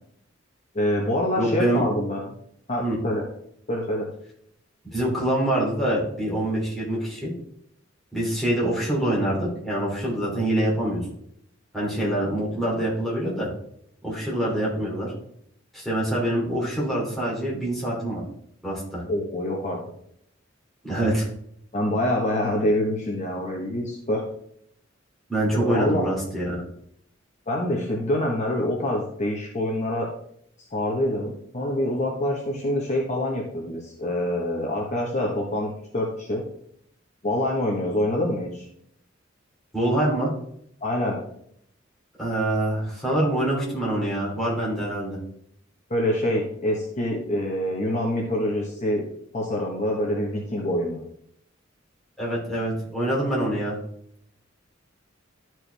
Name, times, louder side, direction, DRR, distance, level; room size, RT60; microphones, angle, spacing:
voice 1, 0.7-2.3 2.7-3.2 3.7-4.1 19.1-19.8 21.7-24.2 25.5-26.1 27.5-30.1 30.7-36.4 37.2-38.7 40.8-41.2 45.9-49.0 49.3-51.0, left 1 dB, 35° left, -1 dB, 1.2 m, -26 dB
voice 2, 1.4-1.8 2.8-3.0 4.9-7.3 8.1-11.0 11.7-13.5 14.0-15.1 15.7-18.2 18.6-19.0 20.8-21.2 25.3-26.6 39.7-40.3 42.2-45.2 52.2-53.8, right 1 dB, ahead, -6 dB, 3.2 m, -25 dB
12.0 x 4.6 x 3.4 m, 0.70 s
head